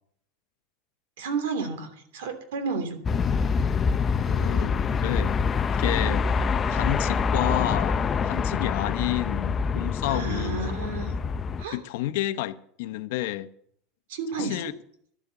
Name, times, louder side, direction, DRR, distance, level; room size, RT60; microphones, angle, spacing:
voice 1, 1.2-3.0 10.1-11.3 11.6-11.8 14.1-14.6, right 4 dB, 90° right, 3.0 m, -31 dB
sound 1, 3.0-11.6, left 5 dB, 20° left, 0.5 m, -25 dB
voice 2, 4.3-5.4 5.8-6.3 6.7-8.0 8.2-10.8 11.7-13.5 14.4-14.7, left 15 dB, 75° left, 0.9 m, -30 dB
12.0 x 8.6 x 7.1 m
supercardioid pair, 150°, 0 cm